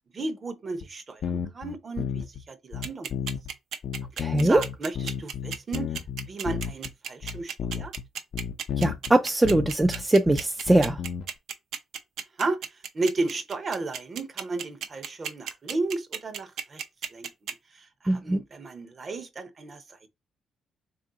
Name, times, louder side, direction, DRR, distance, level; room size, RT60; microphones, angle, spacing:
voice 1, 0.1-3.1 4.4-6.0 6.3-7.9 12.4-12.6 12.9-16.8 17.1-17.3 17.7-20.0, right 3 dB, 40° right, 0.7 m, -33 dB
sound 1, 0.8-0.9 1.2-2.4 2.7-3.5 3.8-6.9 7.2-8.0 8.3-9.1 9.4-11.3, left 8 dB, 60° left, 0.5 m, -32 dB
sound 2, 2.8-17.5, right 7 dB, 75° right, 0.6 m, -34 dB
voice 2, 4.2-4.6 8.8-11.0 18.1-18.4, right 1 dB, 15° right, 0.3 m, -21 dB
3.5 x 2.5 x 3.9 m
cardioid pair, 90°, 0 cm